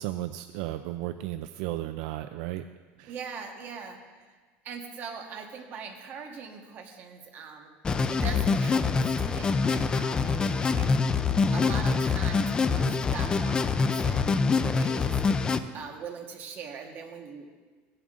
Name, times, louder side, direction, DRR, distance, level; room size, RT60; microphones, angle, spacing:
voice 1, 0.0-2.6 3.0-3.1, right 14 dB, 65° right, 9 dB, 0.3 m, -34 dB
voice 2, 3.1-4.0 4.6-7.7 8.1-10.9 11.5-15.1 15.7-17.5, right 6 dB, 35° right, 3 dB, 1.2 m, -41 dB
sound 1, 7.8-15.6, left 4 dB, 15° left, 0.3 m, -25 dB
16.0 x 11.0 x 2.5 m, 1.4 s
cardioid pair, 160°, 6 cm